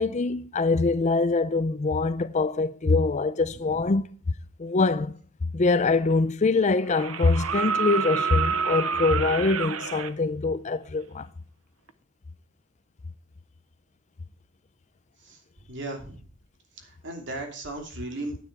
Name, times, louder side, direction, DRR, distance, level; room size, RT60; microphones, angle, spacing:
voice 1, 0.0-4.0 4.6-5.2 5.5-11.3, left 3 dB, 35° left, 0.5 m, -24 dB
voice 2, 3.5-3.9 15.2-15.4 15.7-16.2 16.8-18.4, right 2 dB, 55° right, 2.9 m, -36 dB
sound 1, 5.8-5.9 6.9-10.1 11.9-12.0, right 6 dB, 75° right, 0.8 m, -28 dB
9.7 x 9.5 x 4.6 m
head